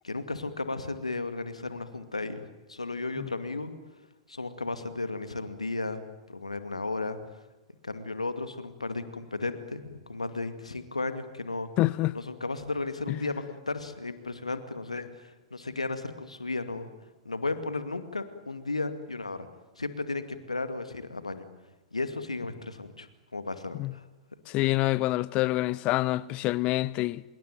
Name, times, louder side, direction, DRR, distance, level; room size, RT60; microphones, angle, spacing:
voice 1, 0.0-3.7 4.3-6.0 6.3-7.2 7.8-11.7 12.1-16.9 17.2-19.5 19.8-21.5 21.9-24.0, left 3 dB, 85° left, 2.3 m, -34 dB
voice 2, 11.8-12.2 13.1-13.2 23.8-23.9 24.5-27.2, left 18 dB, 35° left, 0.8 m, -26 dB
26.0 x 22.0 x 9.3 m
figure-of-eight pair, 105°, 3 cm